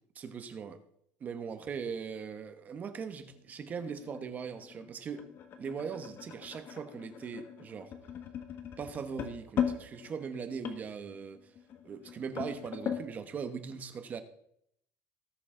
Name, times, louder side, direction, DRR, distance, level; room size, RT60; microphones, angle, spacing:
voice 1, 0.2-0.8 1.2-5.3 5.6-7.9 8.8-11.4 11.8-14.2, right 6 dB, 30° right, 1.1 m, -40 dB
sound 1, 3.3-13.1, left 8 dB, 45° left, 1.6 m, -39 dB
18.5 x 6.7 x 3.8 m
cardioid pair, 140°, 5 cm